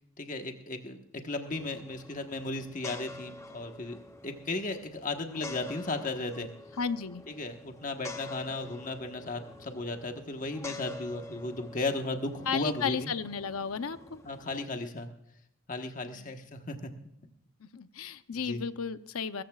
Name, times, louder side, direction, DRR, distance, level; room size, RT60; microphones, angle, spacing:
voice 1, 0.2-1.0 1.2-6.5 7.3-13.1 14.2-15.1 15.7-16.9 18.3-18.6, left 2 dB, 35° left, 4 dB, 1.3 m, -35 dB
sound 1, 1.4-14.6, left 2 dB, 15° left, 0.8 m, -47 dB
voice 2, 6.8-7.2 12.5-14.2 16.0-16.3 17.6-19.4, left 6 dB, 80° left, 11 dB, 0.7 m, -34 dB
21.0 x 14.5 x 2.4 m, 0.75 s
head